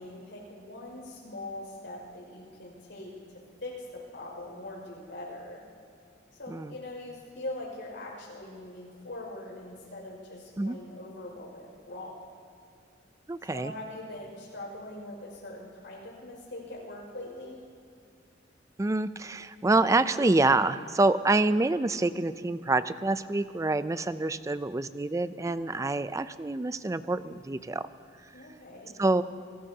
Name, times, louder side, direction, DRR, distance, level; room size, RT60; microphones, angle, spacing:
voice 1, 0.0-3.1 3.6-5.6 6.4-12.3 13.4-17.6 28.3-29.0, left 1 dB, 65° left, -2 dB, 5.5 m, -42 dB
voice 2, 13.3-13.7 18.8-27.8 29.0-29.2, right 2 dB, 15° right, 14 dB, 0.4 m, -26 dB
28.0 x 18.0 x 2.8 m, 2.4 s
head